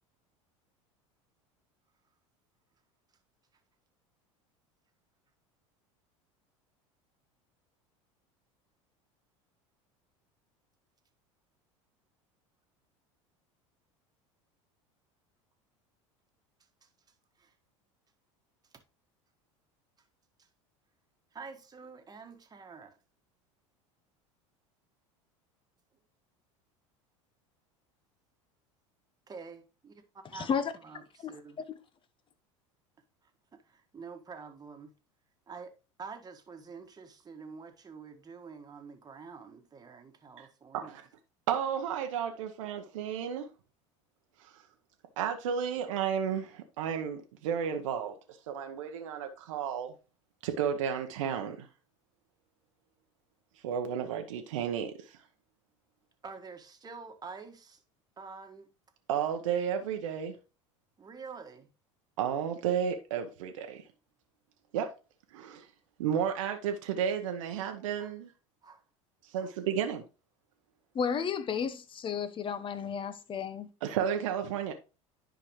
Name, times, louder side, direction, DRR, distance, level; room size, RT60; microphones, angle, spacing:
voice 1, 21.3-23.0 29.3-30.0 30.3-30.5 30.8-31.6 33.5-34.9 35.5-35.7 36.0-40.9 56.2-57.8 58.2-58.7 61.0-61.7 68.0-68.1 68.6-68.8 69.4-69.5, right 5 dB, 25° right, 1.5 m, -47 dB
voice 2, 30.3-30.7 31.2-31.3 31.7-31.8 70.9-73.7, left 7 dB, 30° left, 0.9 m, -32 dB
voice 3, 41.5-43.5 44.4-44.6 45.2-48.1 48.5-49.9 50.4-51.7 53.6-55.2 59.1-60.3 62.2-63.8 64.7-64.9 65.3-65.7 66.0-68.3 69.2-70.0 73.8-74.7, right 8 dB, 75° right, 0.9 m, -32 dB
10.0 x 5.1 x 3.1 m
hypercardioid pair, 85°, 16 cm